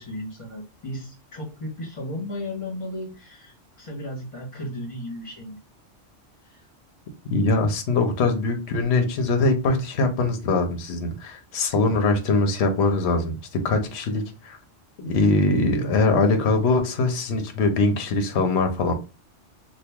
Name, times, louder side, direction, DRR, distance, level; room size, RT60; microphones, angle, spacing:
voice 1, 0.0-5.6 6.4-6.7, left 1 dB, 25° left, -3 dB, 1.3 m, -35 dB
voice 2, 7.3-14.6 15.0-18.9, left 3 dB, 65° left, 6 dB, 1.0 m, -22 dB
2.9 x 2.4 x 3.5 m, 0.30 s
omnidirectional pair, 1.3 m